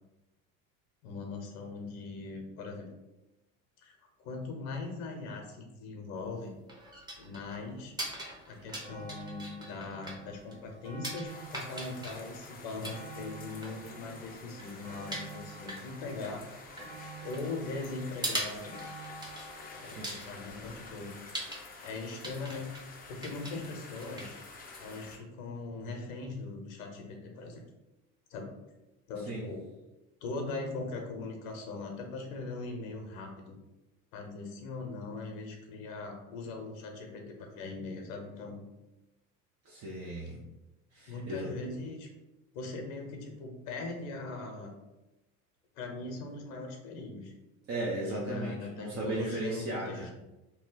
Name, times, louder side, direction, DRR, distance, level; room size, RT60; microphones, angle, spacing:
voice 1, 1.0-2.9 3.8-6.5 7.2-7.9 8.5-16.4 17.2-18.8 19.7-21.2 21.8-24.4 24.8-27.6 28.3-28.6 29.1-29.7 30.2-33.6 34.1-38.6 41.1-42.1 42.5-44.7 45.8-47.3 48.1-50.1, left 3 dB, 70° left, 3 dB, 0.9 m, -40 dB
sound 1, 6.1-25.2, right 1 dB, 10° right, 1.0 m, -43 dB
sound 2, 8.1-8.2 8.5-21.7 22.5-22.6, right 3 dB, 80° right, 1.4 m, -50 dB
sound 3, 11.3-25.2, left 4 dB, 20° left, 0.6 m, -49 dB
voice 2, 19.8-20.1 29.3-29.5 39.6-40.4 40.9-41.5 47.7-50.1, right 1 dB, 35° right, -4 dB, 0.8 m, -36 dB
2.9 x 2.2 x 3.9 m, 1.0 s
hypercardioid pair, 75°, 43 cm